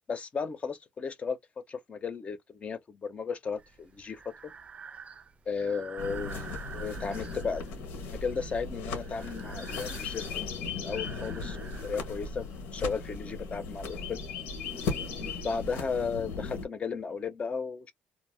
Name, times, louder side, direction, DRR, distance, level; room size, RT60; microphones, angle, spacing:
voice 1, 0.1-1.4 1.7-4.5 5.5-7.7 8.0-12.5 12.7-14.2 15.2-17.9, left 5 dB, 35° left, 0.7 m, -35 dB
Breathing, 3.6-12.6, right 6 dB, 35° right, 0.5 m, -48 dB
sound 1, 6.0-16.6, left 4 dB, 90° left, 1.1 m, -37 dB
2.7 x 2.1 x 3.3 m
cardioid pair, 85°, 4 cm